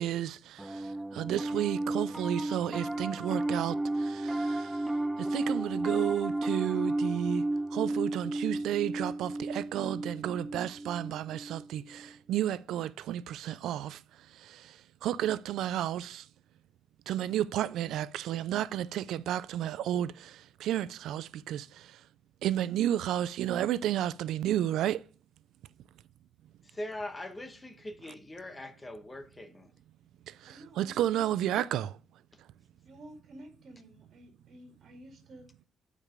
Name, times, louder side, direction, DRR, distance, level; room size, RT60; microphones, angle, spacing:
voice 1, 0.0-4.9 5.2-7.5 7.7-14.0 14.3-16.3 17.1-22.0 22.4-25.0 30.3-32.0, right 11 dB, 85° right, 0.4 m, -32 dB
Piano, 0.6-12.1, right 2 dB, 5° right, 0.4 m, -33 dB
voice 2, 26.6-29.7, left 1 dB, 20° left, 1.1 m, -41 dB
voice 3, 30.4-31.5 32.8-35.5, right 1 dB, 55° right, 2.2 m, -52 dB
8.7 x 4.9 x 4.9 m
cardioid pair, 110°, 0 cm